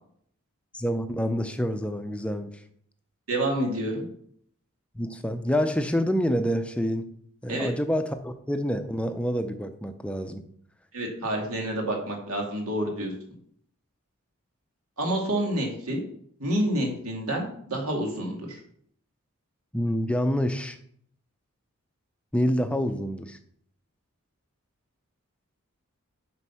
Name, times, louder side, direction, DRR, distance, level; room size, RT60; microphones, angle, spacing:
voice 1, 0.7-2.6 4.9-7.1 7.4-10.4 19.7-20.8 22.3-23.4, equal, 5° left, 8 dB, 0.5 m, -27 dB
voice 2, 3.3-4.1 7.5-7.7 10.9-13.1 15.0-16.0 16.4-18.6, right 1 dB, 80° right, 1 dB, 2.4 m, -28 dB
8.1 x 5.2 x 5.8 m, 0.65 s
head